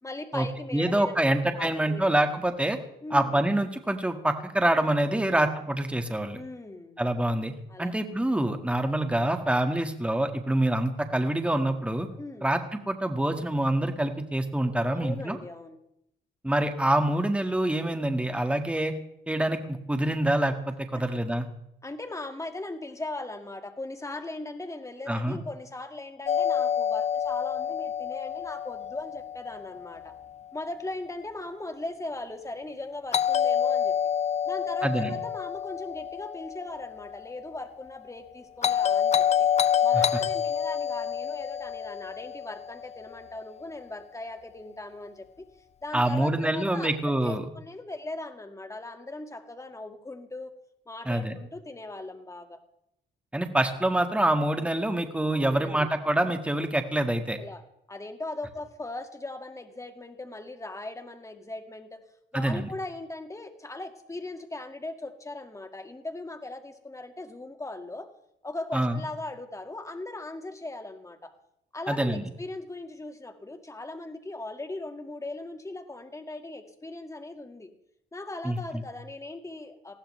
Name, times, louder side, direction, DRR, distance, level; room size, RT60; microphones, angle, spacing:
voice 1, 0.0-2.2 3.0-3.4 5.0-5.6 6.3-7.0 7.7-7.9 12.2-12.5 14.9-15.8 20.9-21.2 21.8-30.1 30.5-34.0 34.5-39.3 39.8-45.5 45.8-50.5 50.9-52.6 55.3-55.9 57.4-57.6 57.9-62.0 62.3-68.1 68.4-71.3 71.7-77.7 78.1-80.0, left 2 dB, 15° left, 6 dB, 2.0 m, -39 dB
voice 2, 0.7-2.8 3.1-6.4 7.0-7.5 7.8-12.1 12.4-15.4 16.4-18.9 19.3-21.5 25.1-25.4 34.8-35.1 39.9-40.0 45.9-47.5 51.1-51.4 53.3-57.4 62.3-62.7 68.7-69.0 71.9-72.3 78.4-78.6, right 1 dB, 5° right, 6 dB, 1.8 m, -26 dB
Doorbell, 26.3-30.2 33.1-37.3 38.6-43.0, left 9 dB, 35° left, 0.5 m, -27 dB
20.0 x 15.5 x 3.3 m, 0.77 s
cardioid pair, 90°, 20 cm